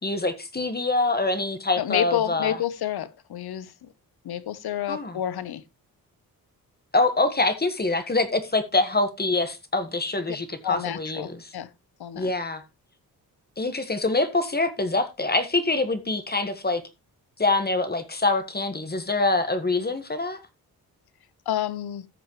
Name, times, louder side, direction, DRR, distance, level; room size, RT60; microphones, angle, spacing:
voice 1, 0.0-2.6 4.9-5.2 6.9-11.5 12.1-12.6 13.6-16.8 17.4-20.4, left 2 dB, 25° left, 1.6 m, -25 dB
voice 2, 1.8-3.9 4.2-5.6 10.6-11.7 12.0-12.3 21.5-22.1, left 11 dB, 80° left, 1.0 m, -29 dB
14.5 x 6.4 x 3.1 m
cardioid pair, 80°, 37 cm